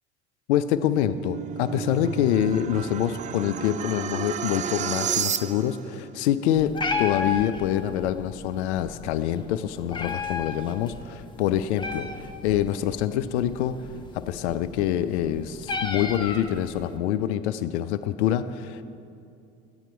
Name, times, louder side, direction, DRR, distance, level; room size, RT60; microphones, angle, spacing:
voice 1, 0.5-13.7 14.1-18.8, left 10 dB, 70° left, 11 dB, 0.5 m, -26 dB
sound 1, 0.7-5.9, right 8 dB, 20° right, 0.4 m, -32 dB
Meow, 6.5-17.0, left 4 dB, 15° left, 0.9 m, -35 dB
13.0 x 9.0 x 4.5 m, 2.6 s
figure-of-eight pair, 70°, 35 cm